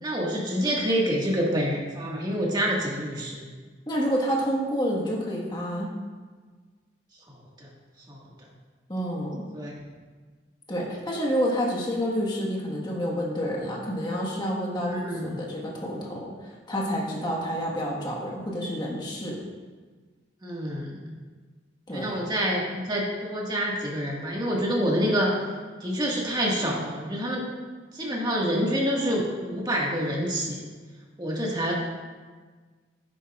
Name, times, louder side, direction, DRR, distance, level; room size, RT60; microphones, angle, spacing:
voice 1, 0.0-3.4 7.3-7.7 8.1-8.2 9.5-9.7 14.8-15.4 20.4-21.1 21.9-25.4 25.8-27.4 27.9-30.6 31.2-31.7, equal, 25° right, -3 dB, 1.7 m, -27 dB
voice 2, 3.9-5.9 8.9-9.4 10.7-19.4 21.9-22.2, equal, 25° left, -3 dB, 1.5 m, -29 dB
9.9 x 9.8 x 2.4 m, 1.4 s
head